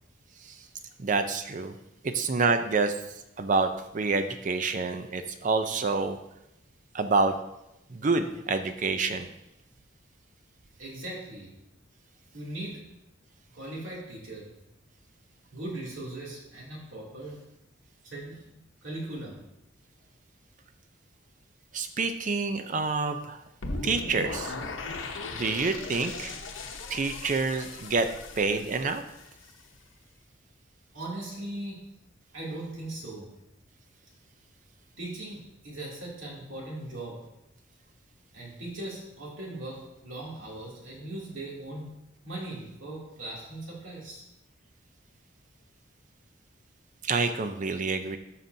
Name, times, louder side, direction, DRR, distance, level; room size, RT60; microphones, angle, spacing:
voice 1, 1.0-1.7 2.0-3.0 3.4-6.2 6.9-7.4 7.9-9.3 21.7-23.4 23.8-24.5 25.3-26.3 26.9-28.1 28.4-29.0 47.0-48.2, right 4 dB, 40° right, 9 dB, 0.5 m, -27 dB
voice 2, 10.8-11.5 12.3-12.9 13.5-14.5 15.5-17.4 18.0-18.5 18.8-19.4 30.9-31.9 32.3-33.4 35.0-37.3 38.3-41.9 42.2-44.2, right 1 dB, 90° right, -5 dB, 2.7 m, -39 dB
sound 1, 23.6-29.7, left 3 dB, 85° left, 0.9 m, -38 dB
12.5 x 5.8 x 2.7 m, 0.86 s
head